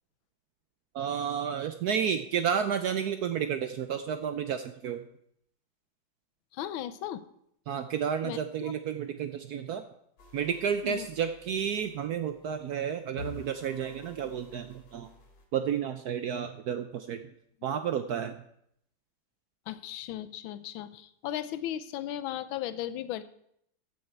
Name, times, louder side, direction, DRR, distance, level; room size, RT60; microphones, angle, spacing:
voice 1, 0.9-5.0 7.7-9.8 10.3-15.1 15.5-17.2 17.6-18.4, right 8 dB, 70° right, 9 dB, 0.9 m, -31 dB
voice 2, 6.5-7.2 8.2-8.7 10.8-11.1 19.7-23.2, left 12 dB, 85° left, 13 dB, 1.5 m, -36 dB
sound 1, 10.2-15.5, left 3 dB, 65° left, 2.4 m, -50 dB
14.5 x 6.5 x 4.5 m, 0.72 s
omnidirectional pair, 2.2 m